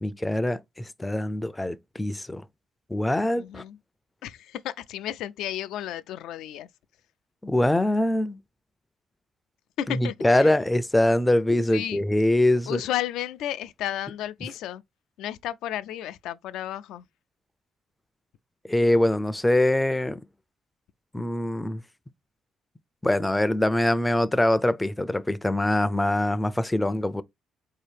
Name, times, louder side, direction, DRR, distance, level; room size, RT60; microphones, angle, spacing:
voice 1, 0.0-2.4 2.9-3.6 7.4-8.4 9.9-12.8 18.7-20.2 21.1-21.8 23.0-27.2, left 1 dB, 10° left, 0.4 m, -23 dB
voice 2, 3.3-3.8 4.2-6.7 9.8-10.5 11.7-12.0 12.7-14.8 15.2-17.0, left 12 dB, 90° left, 0.3 m, -33 dB
4.1 x 2.8 x 3.3 m
cardioid pair, 90°, 0 cm